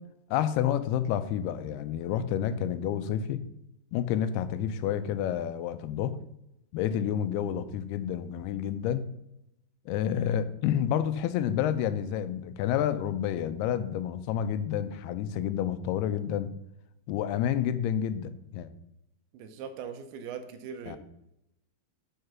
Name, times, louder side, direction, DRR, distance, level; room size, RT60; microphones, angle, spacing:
voice 1, 0.3-3.4 3.9-6.2 6.7-9.1 9.9-16.5 17.1-18.7 20.9-21.0, left 9 dB, 85° left, 12 dB, 2.6 m, -29 dB
voice 2, 19.3-21.0, right 7 dB, 80° right, 8 dB, 2.6 m, -40 dB
6.7 x 6.6 x 5.9 m, 0.84 s
omnidirectional pair, 4.6 m